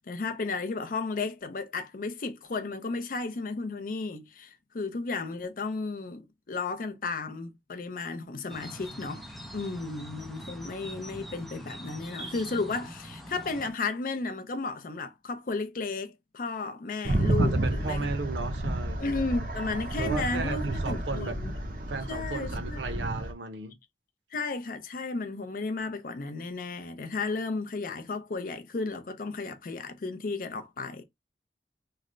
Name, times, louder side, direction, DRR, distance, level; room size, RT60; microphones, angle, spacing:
voice 1, 0.1-9.2 9.5-18.1 19.0-21.5 22.1-23.0 24.3-31.0, left 3 dB, 50° left, 0.5 m, -34 dB
sound 1, 8.5-13.7, equal, ahead, 0.6 m, -43 dB
sound 2, 17.0-23.3, right 1 dB, 50° right, 0.8 m, -30 dB
voice 2, 17.4-19.4 20.0-21.4 21.9-23.8, right 3 dB, 90° right, 0.7 m, -35 dB
3.2 x 2.1 x 3.7 m
head